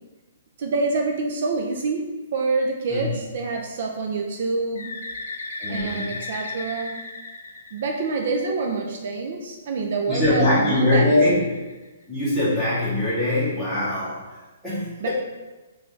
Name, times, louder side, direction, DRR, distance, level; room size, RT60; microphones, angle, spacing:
voice 1, 0.6-4.9 5.7-7.0 7.7-11.3 15.0-15.1, right 3 dB, 45° right, 2 dB, 0.3 m, -26 dB
voice 2, 2.9-3.2 5.6-6.2 10.1-11.4 12.1-15.1, left 1 dB, ahead, -13 dB, 0.8 m, -22 dB
Bird, 4.7-8.5 10.2-12.0, left 3 dB, 70° left, 0.5 m, -36 dB
3.2 x 2.3 x 3.8 m, 1.2 s
hypercardioid pair, 175°, 0 cm